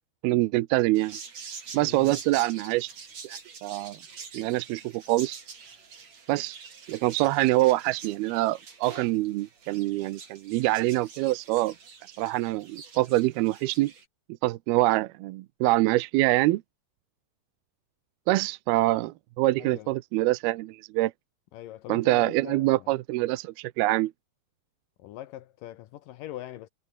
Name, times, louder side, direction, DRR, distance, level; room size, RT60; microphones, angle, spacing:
voice 1, 0.2-1.2 1.7-2.9 3.2-4.0 4.3-5.4 6.3-6.6 6.9-11.7 12.2-13.9 14.4-16.6 18.3-21.1 21.9-24.1, right 18 dB, 75° right, 2.5 m, -25 dB
sound 1, 0.9-14.1, right 5 dB, 40° right, 4.6 m, -46 dB
voice 2, 1.8-2.2 19.6-19.9 21.5-22.9 25.0-26.7, left 14 dB, 80° left, 2.0 m, -42 dB
omnidirectional pair, 4.9 m